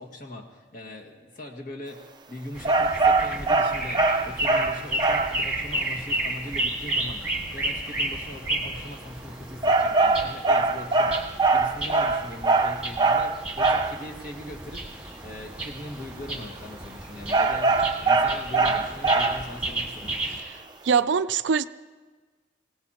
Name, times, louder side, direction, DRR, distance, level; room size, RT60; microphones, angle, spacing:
voice 1, 0.0-20.1, left 1 dB, 45° left, 1 dB, 1.9 m, -41 dB
sound 1, 2.5-20.4, right 2 dB, 5° right, 1.8 m, -33 dB
sound 2, 2.6-5.4 9.6-14.0 17.3-19.6, right 3 dB, 25° right, 0.6 m, -22 dB
voice 2, 20.8-21.7, right 6 dB, 75° right, 14 dB, 0.4 m, -22 dB
24.5 x 17.5 x 3.0 m, 1.4 s
head